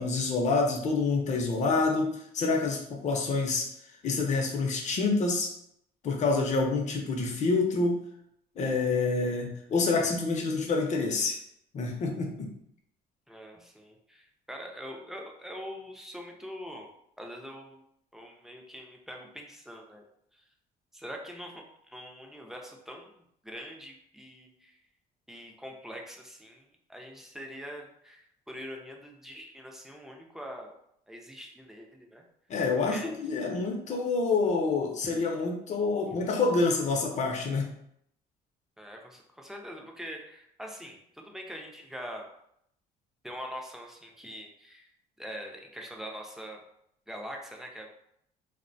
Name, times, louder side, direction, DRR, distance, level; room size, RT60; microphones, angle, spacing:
voice 1, 0.0-3.7 4.0-5.5 6.0-8.0 8.6-11.4 11.7-12.5 32.5-37.7, left 3 dB, 45° left, 2 dB, 0.6 m, -27 dB
voice 2, 13.3-16.9 17.2-17.8 18.1-20.0 20.3-20.4 20.9-24.8 25.3-30.7 31.1-32.2 32.9-33.1 35.0-35.2 36.1-36.3 38.8-42.3 43.2-44.9 45.2-46.6 47.1-47.9, equal, ahead, 1 dB, 0.4 m, -43 dB
2.5 x 2.1 x 2.5 m, 0.73 s
cardioid pair, 110°, 17 cm